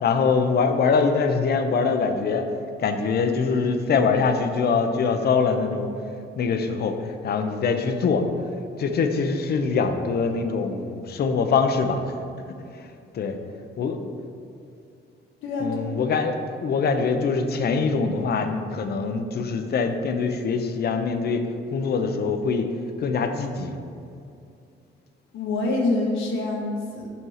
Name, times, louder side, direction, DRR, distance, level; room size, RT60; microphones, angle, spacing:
voice 1, 0.0-2.5 2.8-5.9 6.4-8.3 8.8-12.1 12.7-13.4 13.8-14.1 15.6-21.4 21.7-22.7 23.0-23.8, left 5 dB, 55° left, 6 dB, 0.6 m, -23 dB
voice 2, 15.4-15.8 25.3-27.1, left 2 dB, 80° left, -1 dB, 1.0 m, -26 dB
5.6 x 4.5 x 5.6 m, 2.6 s
cardioid pair, 90°, 20 cm